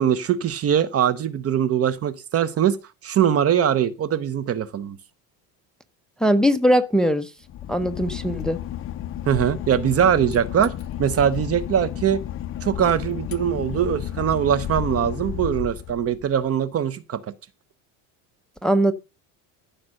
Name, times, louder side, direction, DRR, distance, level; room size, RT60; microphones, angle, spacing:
voice 1, 0.0-2.8 3.0-5.0 9.3-10.7 11.0-12.2 12.6-17.2, right 9 dB, 35° right, 0.9 m, -22 dB
voice 2, 6.2-7.3 7.7-8.6 18.6-18.9, equal, ahead, 0.8 m, -20 dB
Boat Water vehicle / Engine, 7.4-16.4, left 11 dB, 35° left, 0.6 m, -32 dB
14.5 x 5.0 x 6.4 m
cardioid pair, 140°, 42 cm